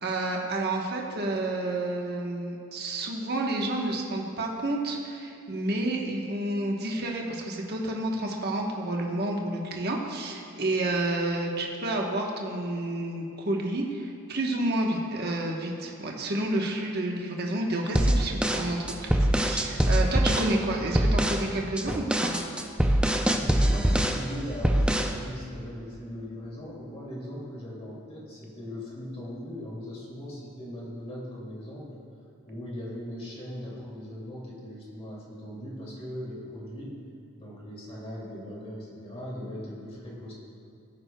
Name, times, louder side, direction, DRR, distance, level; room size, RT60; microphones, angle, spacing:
voice 1, 0.0-22.4, right 1 dB, 50° right, 0 dB, 1.1 m, -30 dB
sound 1, 17.9-20.5 20.9-21.4 21.8-24.2 24.6-25.2, right 1 dB, 5° right, 0.5 m, -23 dB
voice 2, 23.2-32.0 32.5-37.0 37.3-40.3, equal, 30° left, -5 dB, 2.5 m, -39 dB
18.0 x 9.5 x 2.3 m, 2.6 s
head